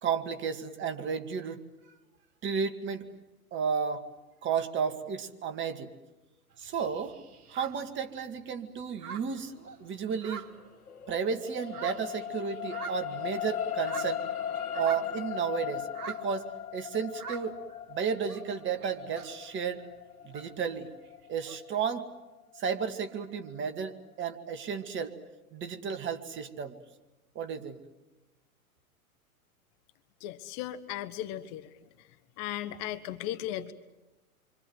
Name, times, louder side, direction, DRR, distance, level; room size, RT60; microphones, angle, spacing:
voice 1, 0.0-1.6 2.4-3.0 3.5-4.1 4.4-5.9 6.6-7.1 7.5-9.5 9.8-10.5 11.1-14.2 14.7-16.5 16.7-17.6 17.9-19.8 20.2-20.9 21.3-22.0 22.6-25.2 25.5-26.8 27.4-27.8, right 6 dB, 25° right, 7 dB, 2.1 m, -33 dB
sound 1, 6.5-8.5 8.8-11.1 11.5-15.3 15.8-16.5 17.1-17.8 18.1-19.5 19.8-21.6, right 6 dB, 80° right, 1.7 m, -45 dB
sound 2, 10.4-22.9 23.5-23.6, left 10 dB, 75° left, 2.1 m, -38 dB
voice 2, 30.2-31.7 32.4-33.7, left 12 dB, 35° left, 11 dB, 1.3 m, -36 dB
27.5 x 25.5 x 8.1 m, 1.1 s
hypercardioid pair, 120°, 45 cm